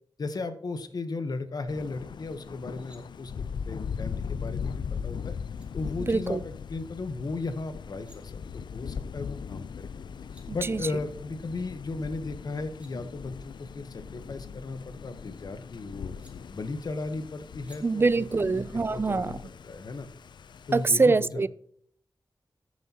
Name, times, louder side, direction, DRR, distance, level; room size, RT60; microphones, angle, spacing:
voice 1, 0.2-3.3 3.7-5.3 5.7-9.9 10.5-16.1 16.5-18.6 18.9-19.4 19.6-20.1 20.7-21.4, left 3 dB, 60° left, 1.0 m, -36 dB
Thunder, 1.7-20.9, left 6 dB, 75° left, 0.4 m, -39 dB
sound 1, 2.5-3.0 5.1-5.2 5.5-5.7 7.7-8.2 9.9-10.0 10.1-10.5 12.4-12.9 14.4-15.4 16.2-16.3 17.6-17.8, right 1 dB, 15° right, 2.2 m, -59 dB
voice 2, 6.0-6.4 10.5-10.8 17.8-19.4 20.7-21.5, right 3 dB, 30° right, 0.3 m, -24 dB
14.0 x 7.3 x 2.9 m
wide cardioid pair, 125°, 8 cm